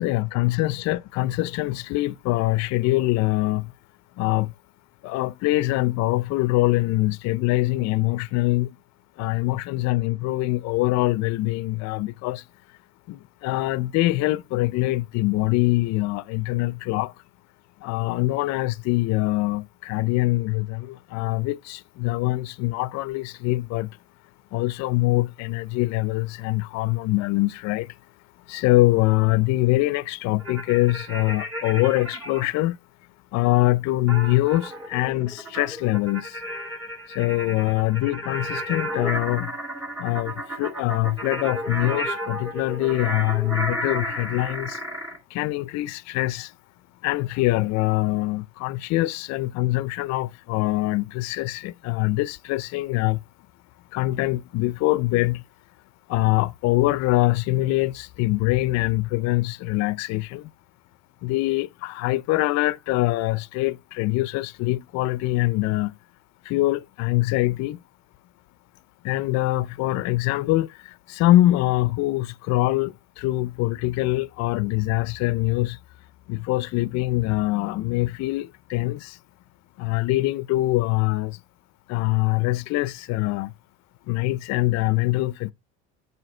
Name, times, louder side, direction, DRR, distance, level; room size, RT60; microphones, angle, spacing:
voice 1, 0.0-3.7 4.2-4.5 5.0-8.8 9.2-12.4 13.1-17.1 17.8-24.0 24.5-27.9 28.5-32.8 33.3-36.4 37.1-39.5 40.0-44.8 45.3-46.5 47.0-53.2 53.9-55.4 56.1-60.5 61.2-66.0 66.4-67.8 69.0-75.8 76.3-79.2 79.8-81.4 81.9-83.5 84.1-85.5, left 18 dB, 55° left, 0.4 m, -24 dB
sound 1, 30.4-32.5 34.1-45.2, equal, 10° right, 2.6 m, -33 dB
7.6 x 2.8 x 6.0 m
supercardioid pair, 100°, 33 cm